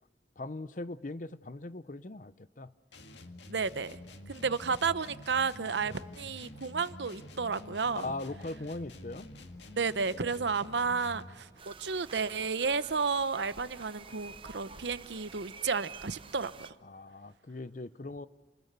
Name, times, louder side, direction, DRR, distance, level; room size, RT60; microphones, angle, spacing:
voice 1, 0.4-2.7 3.2-3.3 5.8-6.0 7.9-9.3 16.8-18.3, left 2 dB, 45° left, 0.7 m, -40 dB
sound 1, 2.9-11.4, left 1 dB, 80° left, 2.0 m, -49 dB
voice 2, 3.5-4.0 4.3-8.1 9.7-16.5, right 5 dB, 80° right, 0.9 m, -32 dB
sound 2, 3.7-11.6, equal, 20° left, 4.6 m, -61 dB
sound 3, 11.6-16.7, right 5 dB, 30° right, 0.7 m, -49 dB
30.0 x 20.5 x 6.8 m
head